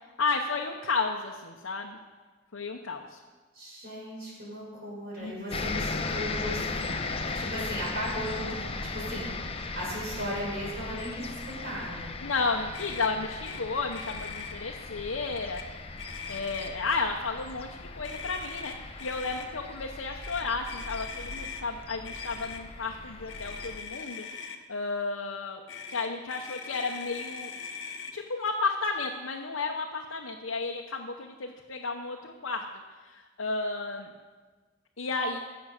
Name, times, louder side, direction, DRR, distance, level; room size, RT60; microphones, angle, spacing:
voice 1, 0.2-2.0 2.5-3.2 5.2-5.3 12.2-15.6 16.3-24.3 24.7-25.6 25.9-27.5 28.1-32.6 33.0-34.1 35.0-35.4, left 4 dB, 85° left, 1 dB, 0.9 m, -32 dB
voice 2, 3.5-6.6 7.0-12.1, equal, 55° right, -4 dB, 4.8 m, -37 dB
sound 1, 5.5-23.8, left 3 dB, 30° left, 0.8 m, -37 dB
Motor vehicle (road), 12.7-13.1 13.4-13.6 13.9-14.6 15.3-15.7 16.0-16.9 18.0-19.5 20.2-21.6 22.0-22.6 23.3-24.6 25.7-28.1, left 5 dB, 65° left, 1.1 m, -41 dB
14.5 x 7.1 x 6.5 m, 1.3 s
head